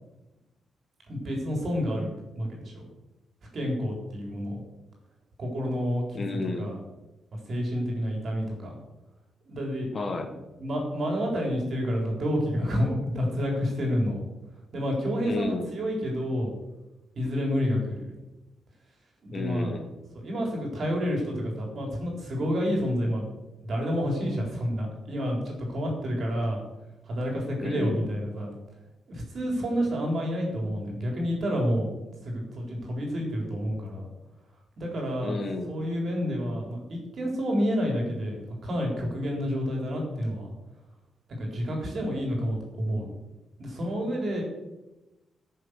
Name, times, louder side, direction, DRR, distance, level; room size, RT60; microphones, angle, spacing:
voice 1, 1.1-2.8 3.5-4.6 5.4-6.8 7.5-8.7 9.5-9.9 10.6-14.2 14.7-16.5 17.2-18.1 19.2-19.7 20.1-23.3 23.6-26.6 27.1-28.5 29.1-31.9 32.2-34.1 34.8-35.4 35.7-40.5 41.4-43.1 43.6-44.4, equal, 45° right, 0 dB, 3.8 m, -29 dB
voice 2, 6.1-6.7 9.9-10.3 15.2-15.7 19.3-19.9 27.6-28.1 35.2-35.7, left 3 dB, 30° left, 5 dB, 1.3 m, -32 dB
14.5 x 6.7 x 6.4 m, 1.0 s
wide cardioid pair, 160°, 0 cm